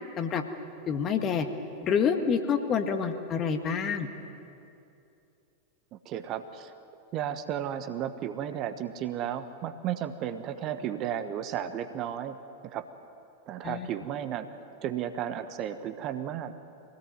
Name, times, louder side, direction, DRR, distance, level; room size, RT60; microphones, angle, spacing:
voice 1, 0.9-1.5 1.8-4.1 13.6-13.9, left 6 dB, 30° left, 7 dB, 1.8 m, -27 dB
voice 2, 5.9-6.7 7.1-12.4 12.6-12.8 13.5-14.5 14.8-16.5, right 10 dB, 35° right, 10 dB, 1.2 m, -33 dB
24.0 x 17.5 x 9.4 m, 2.7 s
figure-of-eight pair, 90°, 0 cm